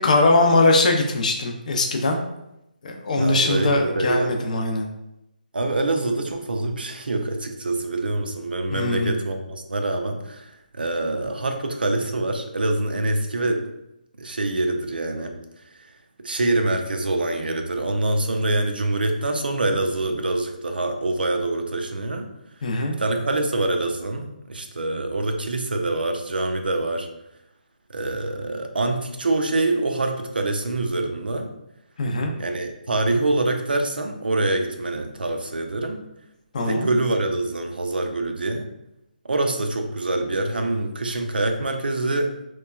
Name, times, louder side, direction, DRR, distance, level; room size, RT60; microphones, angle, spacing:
voice 1, 0.0-2.2 2.8-4.9 8.7-9.2 22.6-22.9 32.0-32.3 36.5-36.9, left 2 dB, 50° left, 3 dB, 0.5 m, -21 dB
voice 2, 3.2-4.5 5.5-13.6 14.2-15.3 16.2-22.3 23.0-27.1 27.9-31.5 32.4-36.1 36.6-38.7 39.2-42.3, right 2 dB, 85° right, 5 dB, 0.4 m, -25 dB
2.9 x 2.2 x 2.3 m, 0.87 s
figure-of-eight pair, 155°, 5 cm